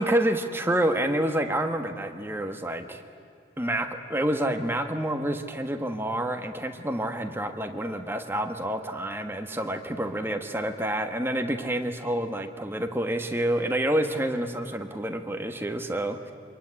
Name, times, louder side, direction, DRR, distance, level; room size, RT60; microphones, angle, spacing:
voice 1, 0.0-3.0 3.6-16.3, right 1 dB, 10° right, 5 dB, 1.4 m, -28 dB
25.5 x 22.0 x 9.8 m, 2.5 s
head